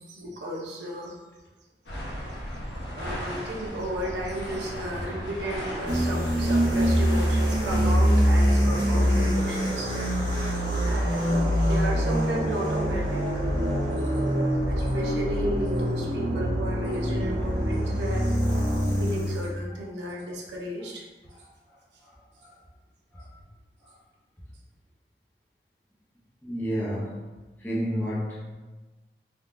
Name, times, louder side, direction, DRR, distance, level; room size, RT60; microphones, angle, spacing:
voice 1, 0.1-1.2 3.0-10.1 10.8-13.2 14.7-18.3 19.0-21.0, right 1 dB, 80° right, -2 dB, 0.6 m, -34 dB
sound 1, 1.9-8.5, equal, 80° left, 0.7 m, -36 dB
sound 2, 5.9-19.5, equal, 45° right, 1.4 m, -24 dB
voice 2, 26.4-27.2 27.6-28.5, equal, 10° left, -8 dB, 0.5 m, -31 dB
3.5 x 2.2 x 2.4 m, 1.2 s
head